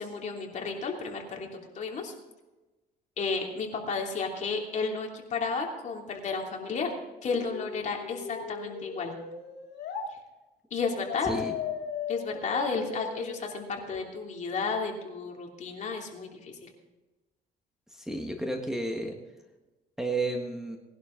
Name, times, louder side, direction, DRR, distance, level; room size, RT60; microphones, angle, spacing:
voice 1, 0.0-1.5 1.7-2.1 3.2-6.9 7.2-9.1 10.7-11.3 12.1-16.7, left 4 dB, 45° left, 1 dB, 2.9 m, -32 dB
sound 1, 7.2-10.1 11.1-14.1, left 6 dB, 75° left, 2.3 m, -38 dB
voice 2, 11.2-11.5 17.9-19.1 20.0-20.8, right 2 dB, 5° right, 3 dB, 1.7 m, -32 dB
19.0 x 11.5 x 3.9 m, 1.1 s
cardioid pair, 110°, 17 cm